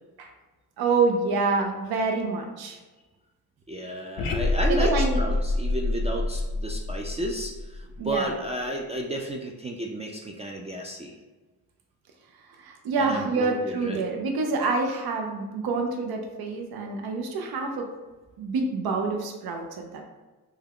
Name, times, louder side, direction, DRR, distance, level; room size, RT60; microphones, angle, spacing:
voice 1, 0.8-2.8 4.7-5.2 8.0-8.3 12.6-17.9 18.4-20.0, right 3 dB, 80° right, 2 dB, 0.6 m, -27 dB
voice 2, 3.7-11.1 13.0-14.0, right 1 dB, 20° right, -1 dB, 0.3 m, -32 dB
sound 1, 4.2-8.3, left 2 dB, 70° left, 0.5 m, -27 dB
3.5 x 2.2 x 3.5 m, 1.2 s
cardioid pair, 85°, 36 cm